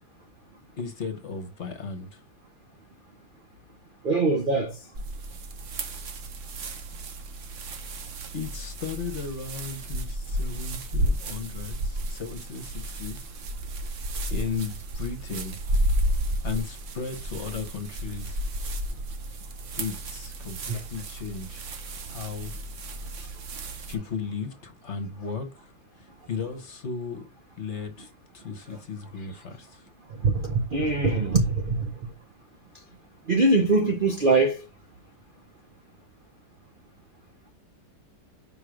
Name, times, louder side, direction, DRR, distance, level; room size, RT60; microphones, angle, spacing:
voice 1, 0.8-2.2 8.3-13.3 14.3-15.6 16.4-18.4 19.8-21.7 22.1-22.5 23.9-25.7 26.0-27.3 27.6-29.8, left 5 dB, 45° left, 1.1 m, -35 dB
voice 2, 4.0-4.8 20.7-20.8 30.1-32.1 33.3-34.6, right 3 dB, 90° right, 0.4 m, -23 dB
sound 1, 4.9-23.9, right 1 dB, 55° right, 0.9 m, -32 dB
5.1 x 4.8 x 5.0 m
omnidirectional pair, 2.0 m